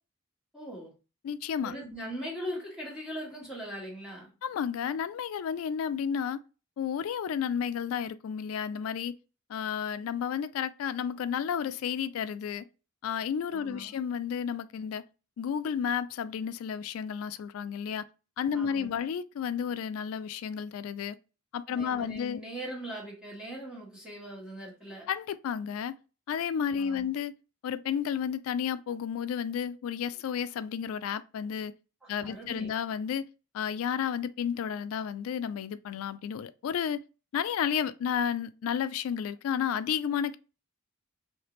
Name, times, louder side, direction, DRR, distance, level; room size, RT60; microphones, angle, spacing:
voice 1, 0.5-0.9 1.6-4.3 13.5-14.0 18.5-19.0 21.7-25.1 26.7-27.1 32.0-32.7, equal, 5° right, 1.3 m, -40 dB
voice 2, 1.2-1.7 4.4-6.4 6.8-9.1 9.5-12.6 13.0-15.0 15.4-18.0 18.4-21.2 21.5-22.4 25.1-26.0 26.3-27.3 27.6-31.7 32.1-33.3 33.5-37.0 37.3-40.4, left 8 dB, 80° left, 0.3 m, -32 dB
3.3 x 2.8 x 3.0 m
head